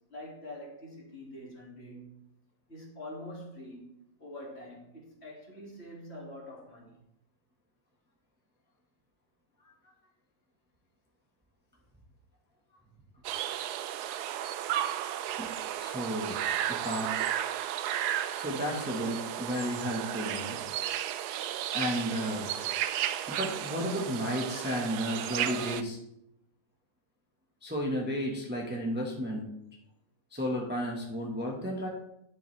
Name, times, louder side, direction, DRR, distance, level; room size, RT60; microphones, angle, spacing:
voice 1, 0.0-2.2 2.7-3.9 4.2-7.0, left 1 dB, 40° left, -3 dB, 2.6 m, -45 dB
sound 1, 13.2-25.8, right 11 dB, 85° right, 1.1 m, -33 dB
voice 2, 15.8-16.4 16.7-17.1 18.3-20.6 21.7-22.5 23.3-26.0 27.6-29.5 30.3-31.9, equal, 5° right, -2 dB, 1.3 m, -33 dB
10.5 x 7.7 x 3.3 m, 0.78 s
omnidirectional pair, 1.6 m